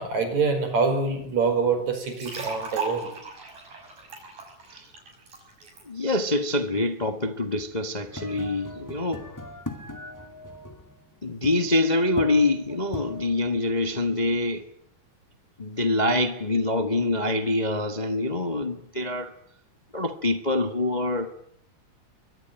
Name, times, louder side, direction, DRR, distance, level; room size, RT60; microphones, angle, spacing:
voice 1, 0.0-3.1, right 4 dB, 60° right, 6.3 m, -25 dB
sound 1, 2.0-5.8, right 4 dB, 85° right, 8.1 m, -37 dB
voice 2, 5.9-9.2 11.2-14.7 15.6-19.3 19.9-21.3, left 2 dB, 40° left, 0.6 m, -25 dB
sound 2, 8.1-14.4, left 1 dB, 5° left, 1.8 m, -39 dB
23.5 x 22.5 x 9.1 m
omnidirectional pair, 3.6 m